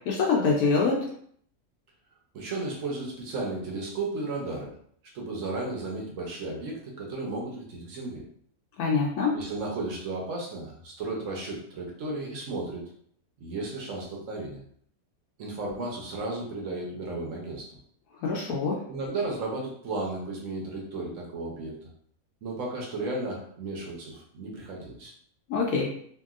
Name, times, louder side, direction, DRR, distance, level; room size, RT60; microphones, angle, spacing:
voice 1, 0.1-1.0 8.8-9.3 18.2-18.8 25.5-25.9, left 4 dB, 80° left, -2 dB, 1.1 m, -24 dB
voice 2, 2.3-4.7 5.1-8.2 9.3-12.8 13.4-14.6 15.4-17.8 18.9-21.8 22.4-25.1, right 2 dB, 65° right, -1 dB, 1.0 m, -34 dB
2.9 x 2.7 x 2.4 m, 0.63 s
omnidirectional pair, 1.6 m